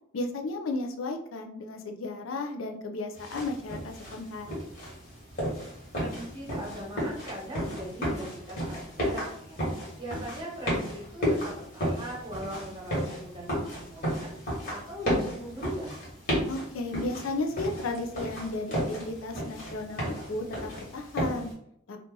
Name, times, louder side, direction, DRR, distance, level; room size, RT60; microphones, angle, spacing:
voice 1, 0.1-4.5 16.5-21.5 21.9-22.0, left 2 dB, 80° left, 4 dB, 0.5 m, -34 dB
Footsteps on Tile, 3.1-21.5, equal, 50° left, 1.5 m, -33 dB
voice 2, 5.9-9.6 10.0-14.3 14.7-16.0, equal, 25° right, -2 dB, 1.0 m, -40 dB
2.7 x 2.4 x 3.7 m, 0.72 s
head